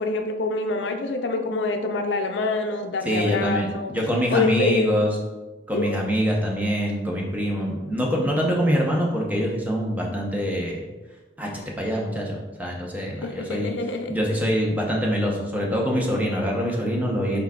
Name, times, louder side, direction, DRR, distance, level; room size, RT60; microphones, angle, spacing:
voice 1, 0.0-3.9 4.3-4.9 5.7-6.0 13.2-14.1, left 3 dB, 90° left, 5 dB, 0.5 m, -26 dB
voice 2, 3.0-5.1 5.7-10.8 11.4-11.5 11.8-13.7 14.1-17.4, equal, 10° right, -2 dB, 0.7 m, -24 dB
5.9 x 3.9 x 2.3 m, 1.2 s
head